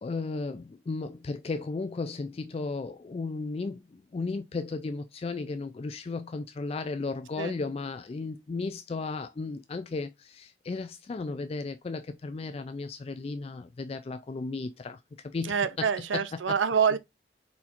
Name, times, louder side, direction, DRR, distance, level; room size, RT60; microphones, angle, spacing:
voice 1, 0.0-16.2 16.5-16.6, left 3 dB, 30° left, 0.3 m, -35 dB
voice 2, 15.4-17.0, right 6 dB, 90° right, 0.6 m, -26 dB
4.3 x 4.2 x 2.5 m
head